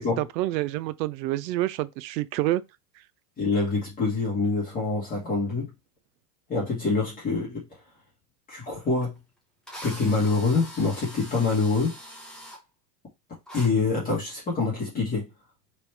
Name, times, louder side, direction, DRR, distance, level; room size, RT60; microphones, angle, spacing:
voice 1, 0.2-2.6, right 15 dB, 90° right, 0.6 m, -27 dB
voice 2, 3.4-5.7 6.5-7.7 8.5-9.2 9.8-11.9 13.5-15.3, left 3 dB, 15° left, 1.4 m, -25 dB
Drill, 9.0-9.1 9.7-12.6 13.5-13.7, equal, ahead, 0.8 m, -42 dB
3.4 x 2.9 x 4.5 m
supercardioid pair, 145°, 49 cm